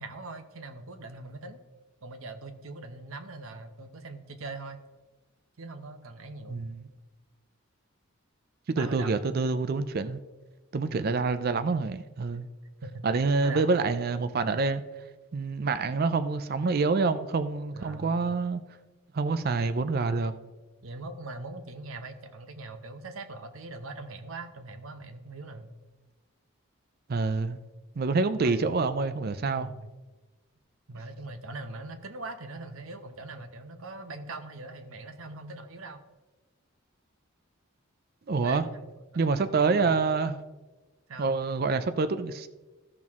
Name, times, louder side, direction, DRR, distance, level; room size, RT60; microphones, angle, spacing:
voice 1, 0.0-1.6 2.0-4.8 5.6-6.6 8.8-9.1 10.9-11.1 12.8-13.0 13.4-13.6 17.7-18.3 20.8-25.7 28.4-28.9 29.6-29.9 30.9-36.0 38.4-40.0 41.1-41.4, right 2 dB, 75° right, 0.9 m, -41 dB
voice 2, 6.5-6.9 8.7-10.2 10.7-12.5 13.0-14.8 15.3-18.6 19.1-20.3 27.1-27.6 28.0-29.7 38.3-38.6 39.2-40.4 41.2-42.5, right 4 dB, 45° right, 0.4 m, -27 dB
14.0 x 6.1 x 3.6 m
head